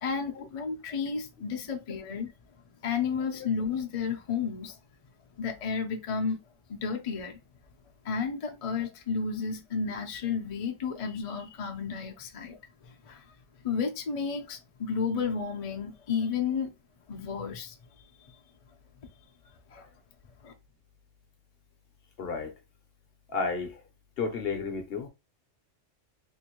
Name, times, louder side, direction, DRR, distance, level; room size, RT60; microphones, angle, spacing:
voice 1, 0.0-2.3 2.8-4.8 5.4-6.4 6.7-7.4 8.0-12.6 12.8-13.2 13.6-16.7 17.1-17.8 19.7-19.9 20.4-20.5, left 5 dB, 40° left, 0.5 m, -32 dB
voice 2, 22.2-22.5 23.3-23.8 24.2-25.1, left 4 dB, 55° left, 0.9 m, -32 dB
3.7 x 2.6 x 2.9 m
omnidirectional pair, 1.3 m